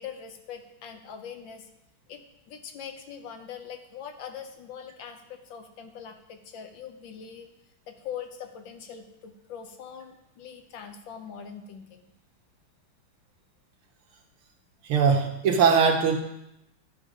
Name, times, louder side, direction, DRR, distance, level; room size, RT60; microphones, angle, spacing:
voice 1, 0.0-1.7 2.1-7.5 7.9-12.0, left 7 dB, 65° left, 6 dB, 1.4 m, -42 dB
voice 2, 14.8-16.2, right 6 dB, 75° right, 3 dB, 2.0 m, -21 dB
12.5 x 5.2 x 5.0 m, 0.85 s
omnidirectional pair, 2.4 m